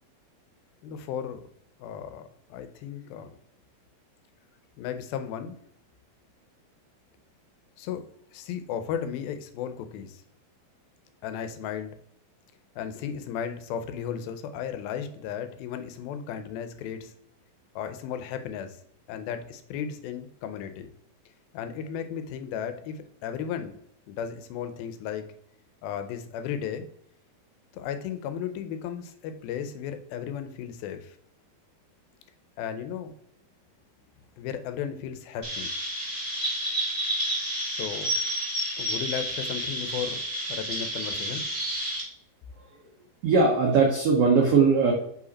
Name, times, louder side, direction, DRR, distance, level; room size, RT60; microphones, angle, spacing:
voice 1, 0.8-1.4 1.8-2.2 2.5-3.3 4.8-5.6 7.8-8.0 8.3-10.2 11.2-12.0 12.8-17.1 17.8-18.8 19.1-20.9 21.5-23.8 24.1-25.3 25.8-26.9 27.7-31.2 32.6-33.1 34.4-35.7 37.6-38.1 38.8-40.2 40.5-41.4, left 8 dB, 85° left, 9 dB, 2.5 m, -35 dB
Chirp tweet, 35.4-42.0, right 1 dB, 15° right, 1.2 m, -30 dB
voice 2, 43.2-44.9, right 4 dB, 80° right, 0 dB, 1.3 m, -20 dB
5.6 x 4.9 x 4.1 m, 0.68 s
omnidirectional pair, 4.2 m